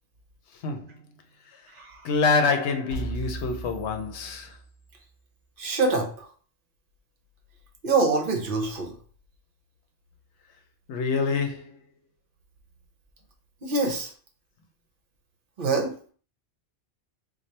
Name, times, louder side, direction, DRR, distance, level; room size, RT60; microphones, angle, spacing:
voice 1, 2.0-4.5 10.9-11.7, left 4 dB, 75° left, 0.9 m, -26 dB
sound 1, 2.9-4.9, right 4 dB, 30° left, 0.8 m, -37 dB
voice 2, 5.6-6.3 7.8-8.9 13.6-14.1 15.6-15.9, right 3 dB, 55° right, 0.8 m, -25 dB
4.2 x 2.3 x 3.1 m
omnidirectional pair, 1.2 m